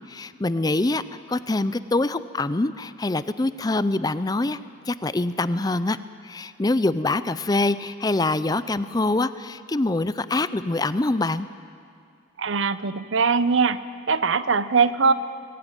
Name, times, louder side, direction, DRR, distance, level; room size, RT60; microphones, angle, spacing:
voice 1, 0.1-1.0 1.3-4.6 4.9-6.0 6.2-11.5, left 2 dB, 20° left, 14 dB, 0.5 m, -24 dB
voice 2, 12.4-13.8 14.1-15.1, right 5 dB, 75° right, 14 dB, 0.8 m, -21 dB
21.5 x 17.0 x 9.1 m, 2.3 s
head